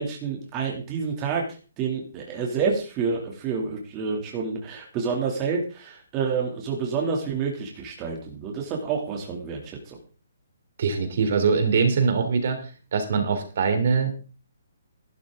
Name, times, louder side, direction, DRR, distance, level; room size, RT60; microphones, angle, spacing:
voice 1, 0.0-1.5 1.8-10.0, right 5 dB, 20° right, 0 dB, 2.7 m, -28 dB
voice 2, 10.8-12.6 12.9-14.1, right 5 dB, 50° right, 7 dB, 3.4 m, -22 dB
13.5 x 12.5 x 3.8 m, 0.35 s
hypercardioid pair, 165°, 0 cm